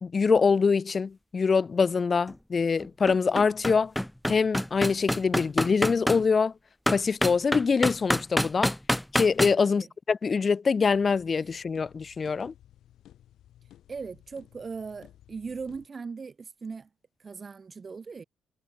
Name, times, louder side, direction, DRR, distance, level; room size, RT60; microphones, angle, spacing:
voice 1, 0.0-3.9 4.3-6.5 6.9-8.7 9.1-12.5, left 5 dB, 35° left, 1.5 m, -24 dB
sound 1, 2.3-2.4 2.8-6.2 6.9-9.5, left 1 dB, 5° left, 0.7 m, -26 dB
sound 2, 10.8-15.9, left 12 dB, 75° left, 7.4 m, -56 dB
voice 2, 13.9-16.9 17.2-18.2, right 5 dB, 35° right, 4.0 m, -39 dB
cardioid pair, 90°, 0 cm